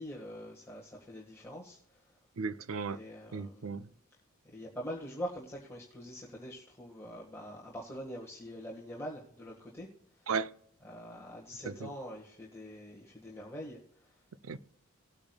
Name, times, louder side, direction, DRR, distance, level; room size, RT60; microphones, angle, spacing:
voice 1, 0.0-2.2 2.8-3.8 4.4-9.9 10.2-10.3 10.8-14.2, equal, 15° left, 1.6 m, -44 dB
voice 2, 2.4-3.0 3.3-3.9 10.3-10.5 11.7-11.9 14.5-14.6, right 5 dB, 70° right, 0.6 m, -35 dB
19.0 x 8.7 x 2.3 m
head